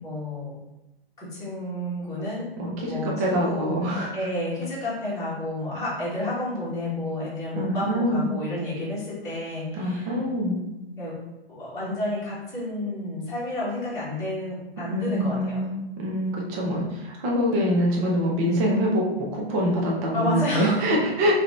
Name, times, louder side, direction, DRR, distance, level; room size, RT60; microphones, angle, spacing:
voice 1, 0.0-0.5 1.2-2.5 2.9-3.8 4.1-10.1 11.0-11.2 11.5-15.6 20.1-20.9, left 1 dB, 10° left, -10 dB, 1.5 m, -30 dB
voice 2, 2.6-4.1 7.5-8.3 9.7-10.6 14.9-21.3, equal, 15° right, -2 dB, 0.4 m, -25 dB
4.8 x 2.7 x 3.1 m, 0.95 s
hypercardioid pair, 150°, 30 cm